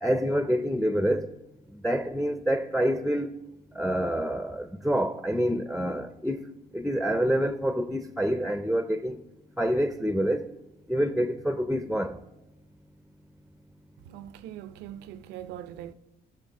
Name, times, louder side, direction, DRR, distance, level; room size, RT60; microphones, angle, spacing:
voice 1, 0.0-1.3 1.8-3.3 3.8-6.4 6.7-9.2 9.6-10.5 10.9-12.2, equal, ahead, 0.5 m, -27 dB
voice 2, 14.0-15.9, right 11 dB, 90° right, 0.6 m, -41 dB
16.0 x 6.3 x 3.6 m
cardioid pair, 110°, 17 cm